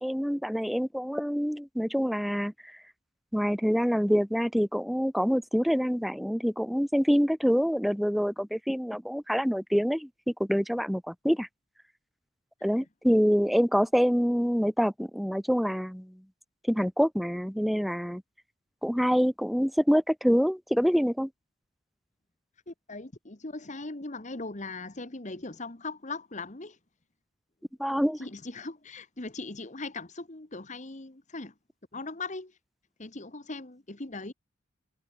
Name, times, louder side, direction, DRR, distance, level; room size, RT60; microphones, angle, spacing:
voice 1, 0.0-2.8 3.3-11.5 12.6-16.2 16.7-18.2 18.8-21.3 27.8-28.2, equal, ahead, 2.7 m, -26 dB
voice 2, 22.7-26.8 28.2-31.5 31.9-32.6 33.0-34.3, left 3 dB, 35° left, 1.5 m, -39 dB
head